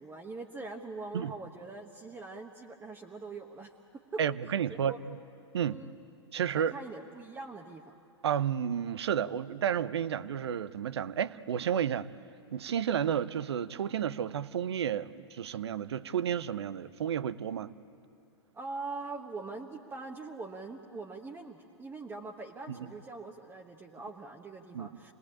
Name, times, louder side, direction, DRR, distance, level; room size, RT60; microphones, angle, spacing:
voice 1, 0.0-3.7 4.1-4.2 4.7-5.0 5.6-6.0 6.5-7.9 18.5-25.1, right 3 dB, 15° right, 1 dB, 1.3 m, -42 dB
voice 2, 4.2-5.2 5.5-5.8 6.3-6.7 8.2-12.1 12.5-17.7 22.7-22.8 24.7-25.1, right 9 dB, 65° right, 16 dB, 0.8 m, -31 dB
27.5 x 20.5 x 8.8 m, 2.7 s
figure-of-eight pair, 100°, 14 cm